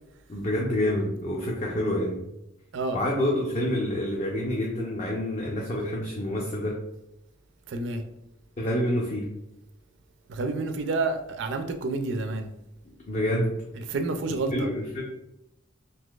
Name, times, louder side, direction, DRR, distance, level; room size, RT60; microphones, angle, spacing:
voice 1, 0.3-2.2 2.9-6.8 8.6-9.3 13.1-13.5 14.5-15.0, left 1 dB, 35° left, -3 dB, 0.5 m, -27 dB
voice 2, 7.7-8.0 10.3-12.5 13.8-14.7, right 3 dB, 60° right, 7 dB, 0.4 m, -29 dB
3.9 x 2.6 x 2.3 m, 0.85 s
head